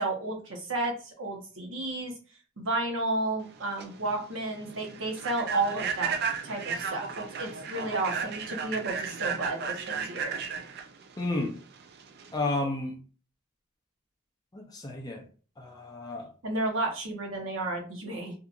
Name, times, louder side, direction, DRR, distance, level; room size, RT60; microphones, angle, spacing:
voice 1, 0.0-2.1 2.6-6.2 6.4-10.4 16.4-18.3, right 2 dB, 65° right, 0.9 m, -32 dB
Human voice / Train, 3.5-12.4, right 6 dB, 50° right, 0.4 m, -35 dB
voice 2, 11.2-11.5 12.3-12.9 14.5-15.2 15.6-16.3, left 2 dB, 20° left, 0.4 m, -31 dB
2.8 x 2.4 x 2.4 m
head